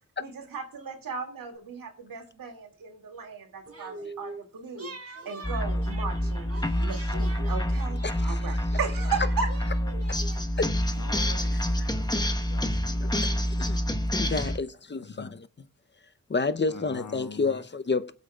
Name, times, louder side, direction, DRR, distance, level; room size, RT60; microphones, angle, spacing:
voice 1, 0.2-9.5, right 5 dB, 85° right, 2.4 m, -36 dB
sound 1, 3.7-4.4 4.7-8.6 9.0-11.3, right 2 dB, 45° right, 4.2 m, -44 dB
sound 2, 5.4-14.6, left 1 dB, 10° left, 1.2 m, -27 dB
voice 2, 8.0-8.4 10.1-10.2 10.6-10.8 13.2-13.3 13.7-13.8 14.2-15.3 16.3-18.1, left 4 dB, 35° left, 0.8 m, -29 dB
voice 3, 10.9-13.4 15.0-15.4 16.7-17.6, left 5 dB, 65° left, 1.5 m, -44 dB
24.5 x 8.2 x 2.4 m
cardioid pair, 60°, 33 cm